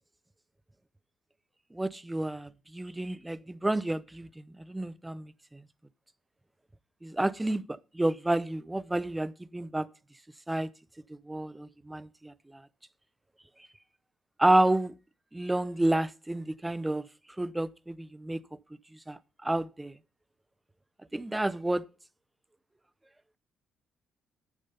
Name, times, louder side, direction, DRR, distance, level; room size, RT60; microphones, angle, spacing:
voice 1, 1.7-5.6 7.0-9.9 10.5-10.7 11.3-12.6 14.4-14.9 15.3-17.1 17.4-18.4 19.1-19.9 21.1-21.8, right 1 dB, 10° right, 0.6 m, -30 dB
9.2 x 7.2 x 5.4 m
cardioid pair, 80°, 0 cm